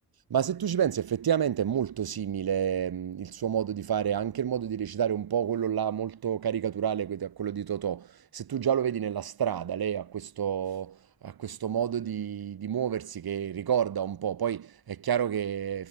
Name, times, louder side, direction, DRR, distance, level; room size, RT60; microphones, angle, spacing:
voice 1, 0.3-15.9, right 9 dB, 60° right, 3.2 m, -29 dB
hypercardioid pair, 45°, 41 cm